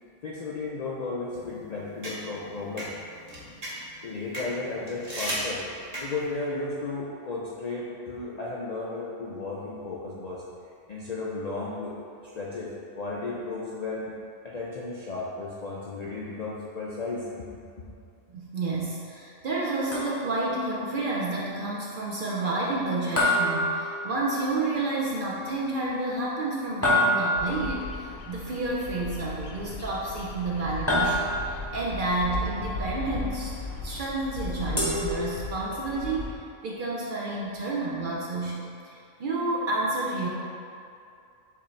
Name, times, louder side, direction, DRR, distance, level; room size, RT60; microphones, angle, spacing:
voice 1, 0.2-2.9 4.0-5.6 6.0-10.4 10.9-11.9 12.3-14.2 14.4-17.5 17.8-17.9, left 3 dB, 60° left, -6 dB, 0.4 m, -34 dB
sound 1, 1.3-6.4, right 1 dB, 35° right, 0.9 m, -37 dB
voice 2, 18.3-33.5 33.8-40.3, right 2 dB, 55° right, -4 dB, 0.6 m, -30 dB
sound 2, 19.9-20.5 23.2-24.4 26.8-27.7 30.9-31.7 34.8-35.8, left 1 dB, 15° left, 0.7 m, -26 dB
Bird vocalization bird call bird song, 27.4-36.4, left 3 dB, 80° left, 1.0 m, -37 dB
6.7 x 2.5 x 3.1 m, 2.5 s
omnidirectional pair, 1.3 m